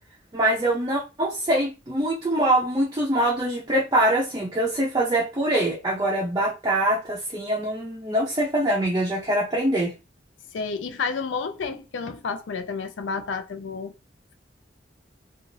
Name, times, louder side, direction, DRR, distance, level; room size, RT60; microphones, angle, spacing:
voice 1, 0.3-9.9, right 1 dB, 20° right, 0.4 m, -24 dB
voice 2, 10.5-13.9, left 5 dB, 85° left, 0.4 m, -30 dB
2.5 x 2.3 x 3.1 m
head